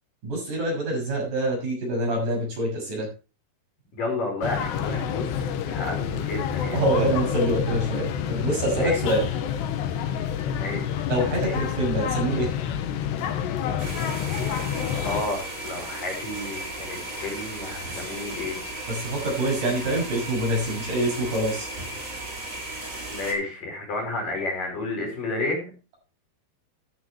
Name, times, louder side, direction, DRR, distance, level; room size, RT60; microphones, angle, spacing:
voice 1, 0.2-3.1 6.7-9.3 11.1-12.5 18.9-21.7, right 1 dB, 45° right, 0 dB, 8.1 m, -25 dB
voice 2, 3.9-6.8 8.8-9.0 10.6-10.8 11.4-11.6 15.0-18.6 23.1-25.7, left 2 dB, 50° left, 0 dB, 6.5 m, -31 dB
sound 1, 4.4-15.2, left 9 dB, 80° left, 3.4 m, -28 dB
sound 2, 13.8-23.3, right 1 dB, 20° right, 3.9 m, -35 dB
15.5 x 10.0 x 3.1 m, 0.32 s
omnidirectional pair, 5.0 m